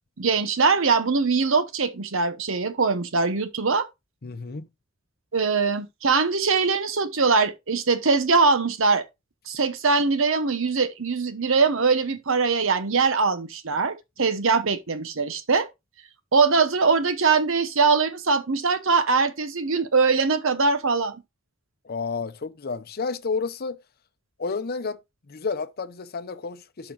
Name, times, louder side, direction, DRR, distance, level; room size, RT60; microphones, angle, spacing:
voice 1, 0.2-3.9 5.3-9.0 9.5-15.7 16.3-21.2, right 4 dB, 70° right, 1.0 m, -22 dB
voice 2, 4.2-4.7 21.8-23.8 24.4-25.0 25.3-26.9, left 4 dB, 50° left, 0.7 m, -31 dB
11.5 x 5.9 x 2.4 m
head